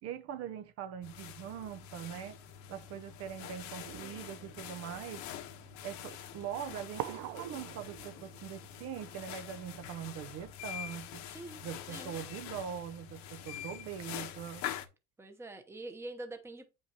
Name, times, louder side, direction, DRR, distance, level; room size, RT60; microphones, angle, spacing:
voice 1, 0.0-2.4 2.7-5.3 5.8-11.2 11.6-14.6, right 9 dB, 50° right, 0.7 m, -42 dB
sound 1, 1.0-14.9, left 10 dB, 60° left, 1.1 m, -45 dB
sound 2, 3.8-8.9, right 13 dB, 80° right, 0.7 m, -46 dB
voice 2, 15.2-16.7, right 2 dB, 10° right, 0.9 m, -44 dB
8.9 x 5.6 x 2.9 m
cardioid pair, 150°, 33 cm